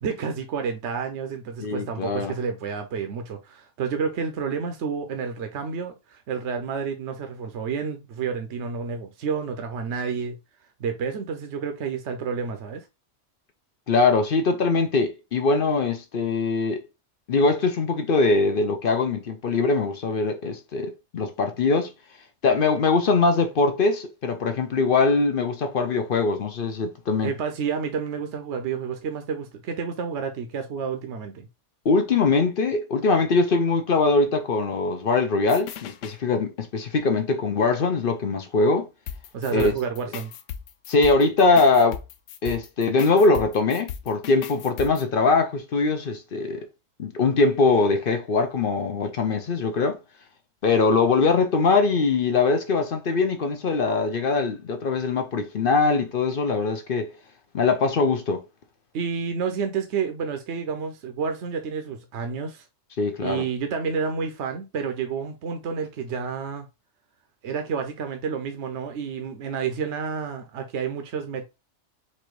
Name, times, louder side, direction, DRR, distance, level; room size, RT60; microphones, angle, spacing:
voice 1, 0.0-10.4 10.8-12.9 27.2-31.5 39.3-40.3 58.9-62.6 63.2-66.7 67.4-71.5, right 6 dB, 70° right, 1.0 m, -30 dB
voice 2, 1.6-2.3 13.9-16.8 17.3-21.9 22.4-27.3 31.8-38.9 39.5-39.7 40.9-42.0 42.4-46.6 47.0-50.0 50.6-57.1 57.5-58.4 63.0-63.4, left 3 dB, 50° left, 0.8 m, -22 dB
sound 1, 35.4-36.2 39.1-45.0, left 9 dB, 85° left, 1.0 m, -37 dB
4.3 x 2.7 x 4.6 m
omnidirectional pair, 1.3 m